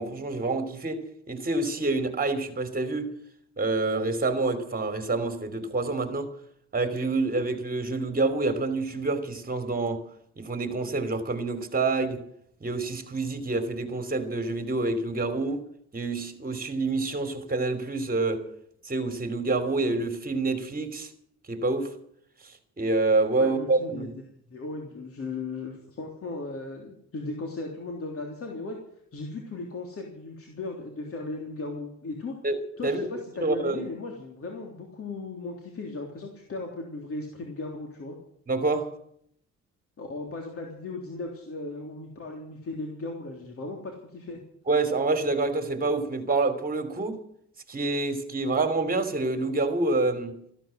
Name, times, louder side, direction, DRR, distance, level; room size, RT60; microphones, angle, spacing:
voice 1, 0.0-3.1 3.6-6.3 6.7-10.0 10.4-12.2 12.6-15.6 15.9-18.5 18.8-21.1 21.5-21.9 22.8-24.1 32.4-33.1 33.4-33.8 38.5-38.9 44.7-47.2 47.7-50.4, right 3 dB, 30° right, 3.1 m, -27 dB
voice 2, 23.4-24.1 24.5-28.8 29.1-32.4 32.8-38.2 40.0-44.4, left 3 dB, 50° left, 3.5 m, -37 dB
14.5 x 12.5 x 7.8 m
cardioid pair, 90°, 30 cm